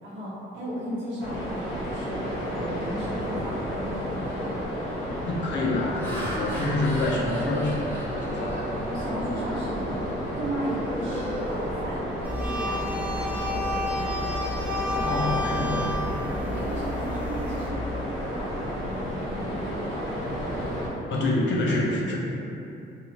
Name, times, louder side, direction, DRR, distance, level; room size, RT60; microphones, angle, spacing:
voice 1, 0.0-4.5 8.8-14.1 14.8-15.5 16.4-18.5 18.8-20.0, equal, 70° right, -9 dB, 1.0 m, -35 dB
sound 1, 1.2-20.9, equal, 90° left, 1.0 m, -32 dB
voice 2, 5.4-8.7 15.0-16.0 21.1-22.2, left 2 dB, 70° left, -3 dB, 0.6 m, -27 dB
Laughter, 5.6-9.4 9.9-10.1 10.5-12.4, equal, 10° left, 1.0 m, -39 dB
sound 2, 12.2-17.7, left 1 dB, 5° right, 0.4 m, -31 dB
2.8 x 2.4 x 2.9 m, 2.8 s
cardioid pair, 90°, 20 cm